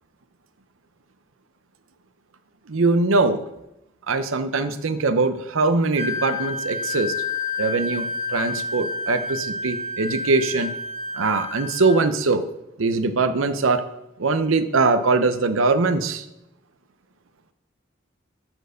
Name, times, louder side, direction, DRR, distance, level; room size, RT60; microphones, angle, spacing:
voice 1, 2.7-3.4 4.1-7.1 7.6-8.1 8.3-10.7 11.2-12.4 12.8-13.8 14.2-16.2, right 3 dB, 80° right, 10 dB, 0.7 m, -21 dB
Wind instrument woodwind instrument, 5.9-12.1, left 3 dB, 30° right, 0.6 m, -30 dB
12.0 x 4.5 x 6.3 m, 0.86 s
head